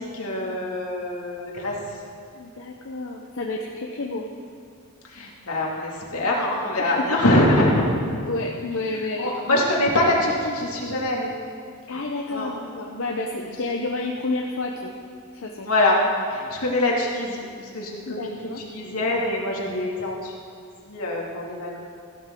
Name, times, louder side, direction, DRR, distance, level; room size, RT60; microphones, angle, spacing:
voice 1, 0.0-1.8 5.1-7.9 8.9-11.3 12.3-12.5 15.6-16.0 16.2-17.5 17.7-20.3 20.6-21.8, left 1 dB, 80° left, -2 dB, 2.5 m, -24 dB
voice 2, 2.3-4.3 6.8-7.2 8.1-9.6 11.9-14.9 15.3-15.7 18.1-18.6, left 2 dB, 60° left, 0 dB, 0.8 m, -30 dB
16.0 x 12.0 x 3.8 m, 2.3 s
head